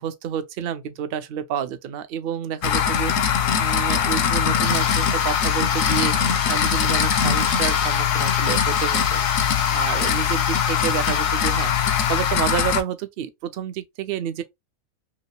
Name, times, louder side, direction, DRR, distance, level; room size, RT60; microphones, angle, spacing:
voice 1, 0.0-14.4, right 9 dB, 65° right, 0.6 m, -30 dB
sound 1, 2.6-12.8, left 8 dB, 75° left, 0.9 m, -21 dB
sound 2, 4.6-12.4, left 5 dB, 55° left, 0.4 m, -33 dB
2.9 x 2.9 x 2.8 m
omnidirectional pair, 1.4 m